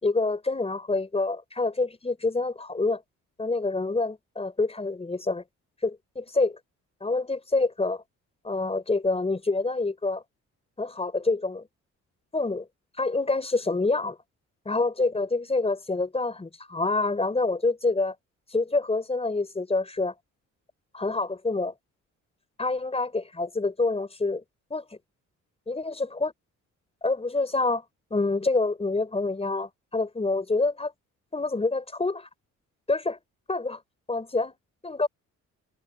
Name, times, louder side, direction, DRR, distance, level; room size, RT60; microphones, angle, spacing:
voice 1, 0.0-3.0 3.4-5.4 5.8-6.6 7.0-8.0 8.4-10.2 10.8-11.6 12.3-12.7 13.0-14.2 14.6-18.1 18.5-20.1 20.9-21.7 22.6-24.4 24.7-24.8 25.7-26.3 27.0-27.8 28.1-30.9 31.3-32.3 32.9-33.2 33.5-33.8 34.1-34.5 34.8-35.1, left 3 dB, 20° left, 4.8 m, -27 dB
cardioid pair, 90°, 30 cm